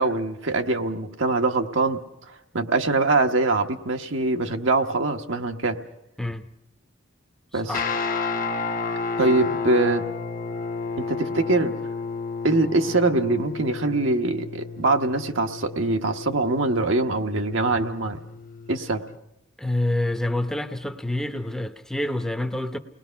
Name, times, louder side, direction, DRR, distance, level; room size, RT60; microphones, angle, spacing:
voice 1, 0.0-2.0 2.5-5.8 7.5-7.8 9.2-10.1 11.0-11.8 12.4-18.2 18.7-19.0, right 2 dB, 70° right, 5 dB, 1.2 m, -23 dB
Guitar, 7.7-19.1, left 4 dB, 45° left, 0.9 m, -31 dB
voice 2, 19.6-22.8, left 1 dB, 5° left, 8 dB, 0.8 m, -27 dB
29.0 x 20.0 x 5.8 m, 0.80 s
head